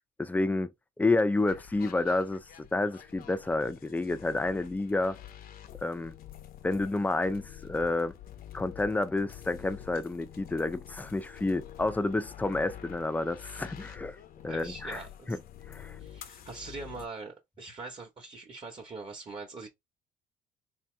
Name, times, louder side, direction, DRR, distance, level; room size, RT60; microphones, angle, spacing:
voice 1, 0.2-0.7 1.0-5.2 5.8-6.1 6.6-8.2 8.5-14.2 14.4-15.0 15.3-15.4 15.7-16.0, left 2 dB, 10° left, 0.5 m, -29 dB
sound 1, 1.4-17.1, left 11 dB, 60° left, 0.7 m, -48 dB
voice 2, 14.5-15.4 16.0-19.7, right 3 dB, 35° right, 1.2 m, -43 dB
3.6 x 2.8 x 3.2 m
cardioid pair, 110°, 17 cm